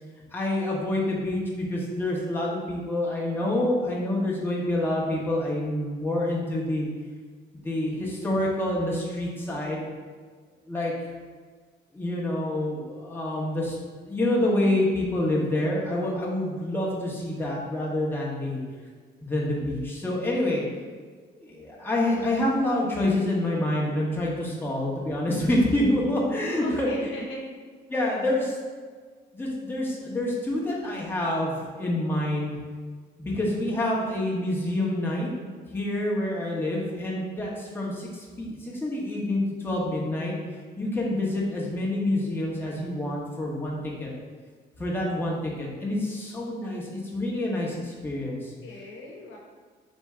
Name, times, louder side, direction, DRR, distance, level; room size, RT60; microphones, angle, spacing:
voice 1, 0.3-6.9 7.5-9.8 10.7-10.9 11.9-18.6 19.2-20.6 21.4-27.1 27.9-28.6 29.3-32.5 33.2-35.3 35.7-40.3 40.8-44.1 44.8-48.5, left 1 dB, 10° left, -5 dB, 1.0 m, -27 dB
voice 2, 26.5-27.4 48.6-49.4, left 2 dB, 80° left, -2 dB, 0.9 m, -38 dB
3.6 x 2.8 x 4.3 m, 1.5 s
cardioid pair, 90°, 20 cm